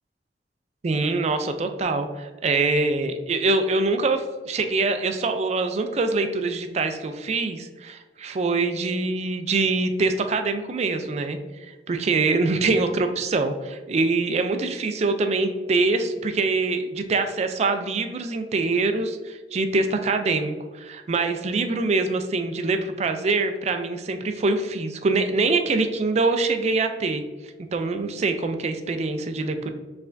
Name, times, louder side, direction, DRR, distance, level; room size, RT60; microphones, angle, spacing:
voice 1, 0.8-11.4 11.7-27.2 27.7-29.7, right 3 dB, 35° right, 7 dB, 0.4 m, -24 dB
4.5 x 3.3 x 2.5 m, 1.3 s
head